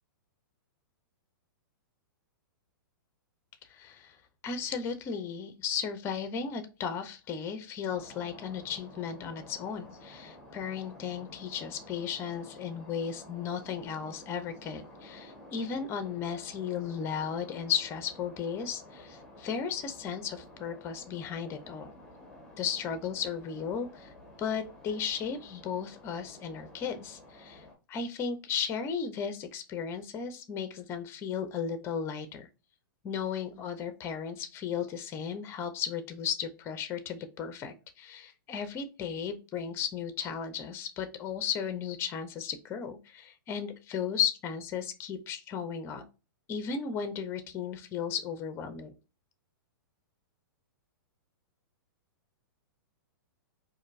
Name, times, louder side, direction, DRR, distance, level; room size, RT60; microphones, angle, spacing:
voice 1, 3.7-4.2 4.4-21.9 22.6-24.1 24.4-32.5 33.0-46.0 46.5-48.9, left 7 dB, 20° left, 9 dB, 0.6 m, -35 dB
sound 1, 7.9-27.8, left 1 dB, 5° left, 0.9 m, -51 dB
4.3 x 2.6 x 2.5 m, 0.31 s
hypercardioid pair, 150°, 12 cm